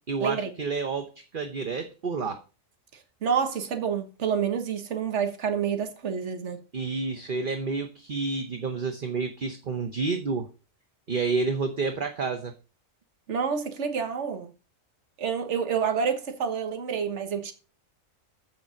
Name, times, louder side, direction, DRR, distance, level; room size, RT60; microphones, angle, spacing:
voice 1, 0.1-2.4 6.7-10.5 11.1-12.5, right 4 dB, 45° right, 1.0 m, -29 dB
voice 2, 3.2-6.6 13.3-14.5 15.2-17.5, right 7 dB, 60° right, 1.6 m, -28 dB
7.7 x 6.8 x 5.0 m
omnidirectional pair, 1.4 m